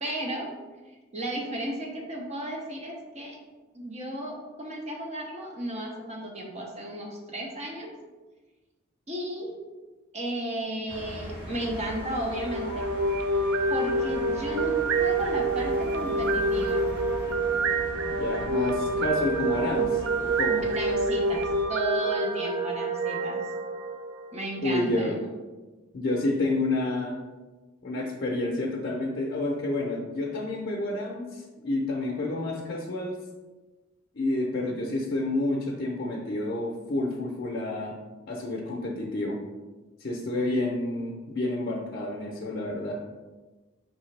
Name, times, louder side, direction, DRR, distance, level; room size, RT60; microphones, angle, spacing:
voice 1, 0.0-0.5 1.1-3.4 3.7-7.9 9.1-9.5 10.1-12.9 13.7-16.9 20.6-23.5 24.3-25.2, right 1 dB, 35° right, 0 dB, 0.7 m, -34 dB
sound 1, 10.9-21.6, equal, 55° right, 1.4 m, -40 dB
sound 2, 12.3-24.4, right 2 dB, 85° right, 0.5 m, -27 dB
voice 2, 18.2-20.6 24.6-25.2 25.9-27.2 27.8-33.2 34.1-37.9 38.3-39.4 40.0-43.0, left 2 dB, 50° left, -3 dB, 0.6 m, -29 dB
4.7 x 3.3 x 3.3 m, 1.2 s
head